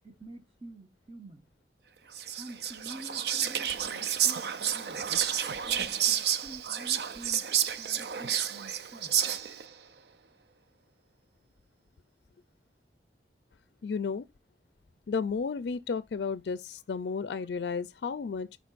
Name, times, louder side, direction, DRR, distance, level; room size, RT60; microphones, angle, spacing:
voice 1, 0.0-1.5 2.4-5.0 5.6-7.4 7.8-9.2, right 2 dB, 30° right, 1.1 m, -48 dB
Whispering, 2.1-9.7, right 9 dB, 65° right, 0.5 m, -30 dB
voice 2, 13.8-14.3 15.1-18.6, left 5 dB, 75° left, 0.4 m, -33 dB
10.5 x 4.2 x 2.5 m
head